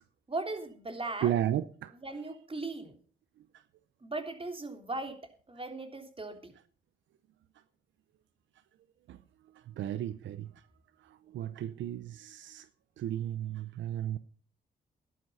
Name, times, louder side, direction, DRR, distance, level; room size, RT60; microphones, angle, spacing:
voice 1, 0.3-1.3 1.9-2.9 4.0-5.2 5.5-6.5, right 2 dB, 30° right, 3.3 m, -38 dB
voice 2, 1.2-1.6 9.8-10.4 11.3-12.1 12.5-12.6 13.0-14.2, right 11 dB, 85° right, 0.6 m, -32 dB
12.5 x 11.0 x 5.6 m
supercardioid pair, 55°, 19 cm